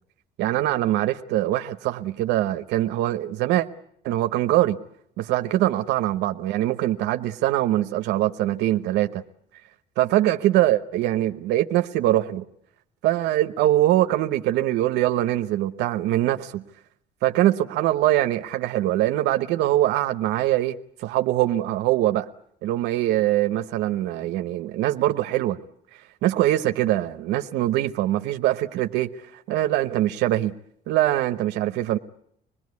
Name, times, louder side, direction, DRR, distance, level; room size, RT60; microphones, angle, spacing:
voice 1, 0.4-3.7 4.0-4.8 5.2-9.2 10.0-12.4 13.0-16.6 17.2-22.3 22.6-25.6 26.2-30.5 30.9-32.0, right 14 dB, 90° right, 0.9 m, -23 dB
26.0 x 19.5 x 9.6 m
cardioid pair, 110°, 17 cm